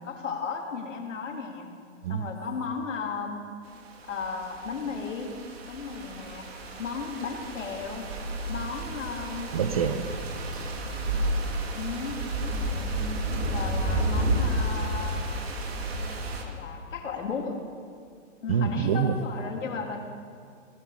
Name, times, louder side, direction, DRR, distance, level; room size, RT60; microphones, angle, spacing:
voice 1, 0.0-1.7 2.1-3.5 4.1-5.4 5.6-6.5 6.8-8.1 8.5-9.5 11.7-13.0 13.5-15.3 16.4-17.6 18.4-20.0, left 5 dB, 75° left, 2 dB, 2.8 m, -35 dB
sound 1, 4.1-16.4, right 1 dB, 55° right, 2.2 m, -31 dB
voice 2, 9.5-10.7 18.5-19.1, right 7 dB, 30° right, 10 dB, 0.5 m, -27 dB
18.0 x 12.0 x 5.6 m, 2.2 s
hypercardioid pair, 160°, 38 cm